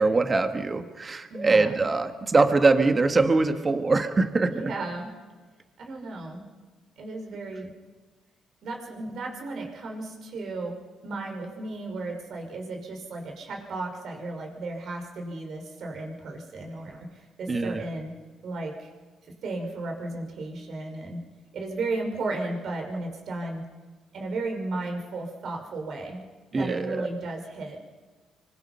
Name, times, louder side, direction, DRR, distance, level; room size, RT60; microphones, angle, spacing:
voice 1, 0.0-4.5 17.5-17.8 26.5-27.1, right 3 dB, 30° right, 7 dB, 1.8 m, -23 dB
voice 2, 1.3-1.8 4.4-5.1 5.8-6.4 7.0-7.7 8.6-18.2 18.4-18.9 19.3-21.3 21.5-23.7 24.1-26.2 26.5-27.8, right 2 dB, 65° right, 2 dB, 5.6 m, -34 dB
25.0 x 24.0 x 5.8 m, 1.4 s
cardioid pair, 90°, 0 cm